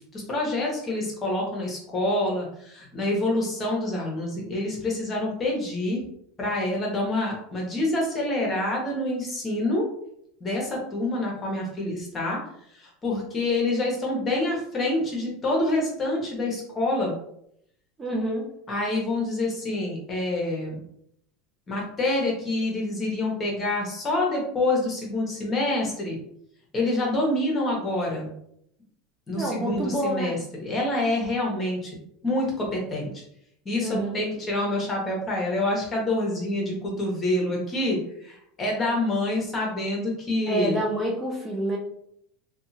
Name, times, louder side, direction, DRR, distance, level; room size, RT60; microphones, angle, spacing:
voice 1, 0.1-6.0 6.4-9.9 10.4-12.4 12.7-17.2 18.7-20.8 21.7-26.2 26.7-28.3 29.3-31.9 32.2-33.2 33.6-40.8, left 2 dB, 30° left, -1 dB, 1.1 m, -27 dB
voice 2, 18.0-18.5 29.4-30.4 33.8-34.2 40.5-41.8, right 1 dB, 15° right, -2 dB, 0.6 m, -28 dB
2.7 x 2.4 x 2.7 m, 0.71 s
supercardioid pair, 105°, 0 cm